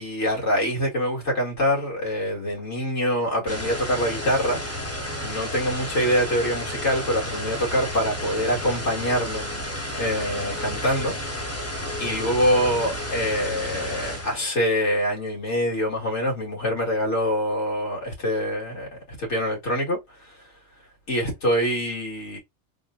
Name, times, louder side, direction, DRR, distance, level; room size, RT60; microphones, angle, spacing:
voice 1, 0.0-4.6 5.2-9.5 10.0-11.2 12.0-20.4 21.1-22.4, equal, 60° left, 2.2 m, -25 dB
sound 1, 3.5-14.4, equal, 15° left, 0.8 m, -32 dB
3.7 x 2.2 x 3.7 m
omnidirectional pair, 1.4 m